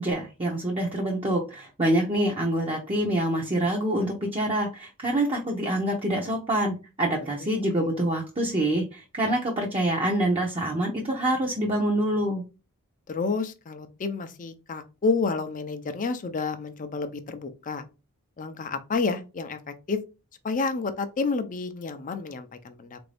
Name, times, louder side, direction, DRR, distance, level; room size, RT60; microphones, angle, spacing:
voice 1, 0.0-12.4, right 1 dB, 25° right, 0.7 m, -26 dB
voice 2, 13.1-17.8 18.4-20.0 20.4-23.0, left 4 dB, 35° left, 0.5 m, -30 dB
3.8 x 2.6 x 3.3 m
head